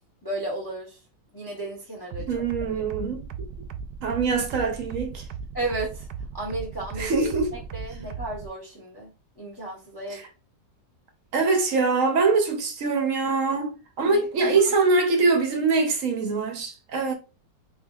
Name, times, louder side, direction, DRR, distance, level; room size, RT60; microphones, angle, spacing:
voice 1, 0.2-1.0 1.3-2.4 5.5-6.1 6.3-9.1 9.4-10.2 14.0-14.7, right 2 dB, 20° left, 0.8 m, -34 dB
sound 1, 2.1-8.5, right 6 dB, 80° right, 1.2 m, -36 dB
voice 2, 2.3-3.5 4.0-5.3 7.0-7.5 10.1-10.2 11.3-17.1, right 4 dB, 60° right, 1.0 m, -23 dB
4.0 x 3.8 x 2.3 m
omnidirectional pair, 1.9 m